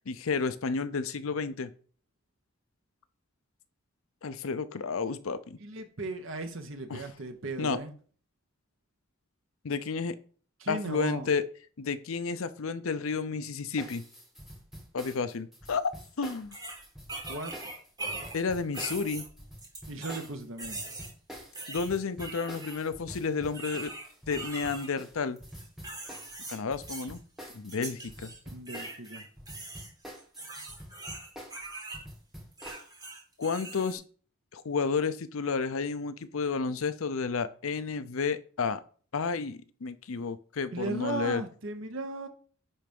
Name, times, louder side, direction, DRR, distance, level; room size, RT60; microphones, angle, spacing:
voice 1, 0.1-1.7 4.2-5.6 6.9-7.0 7.6-7.8 9.6-10.2 10.7-11.4 11.8-14.0 14.9-15.8 16.2-16.6 18.3-19.2 21.7-23.9 24.3-25.4 26.5-27.2 27.5-28.3 33.4-34.0 34.5-38.8 39.1-41.4, left 5 dB, 75° left, 0.6 m, -31 dB
voice 2, 5.6-7.9 10.6-11.3 17.3-17.7 19.9-20.8 28.4-29.2 40.7-42.3, right 2 dB, 65° right, 1.2 m, -37 dB
sound 1, 13.8-29.1 29.4-32.9, equal, ahead, 1.3 m, -47 dB
sound 2, 15.8-15.9 16.5-18.4 18.7-20.3 20.6-21.1 21.5-22.8 23.5-24.9 25.4-26.6 26.9-27.2 27.7-28.4 28.7-32.0 32.5-33.9, right 2 dB, 20° right, 2.0 m, -41 dB
9.9 x 3.4 x 5.3 m
head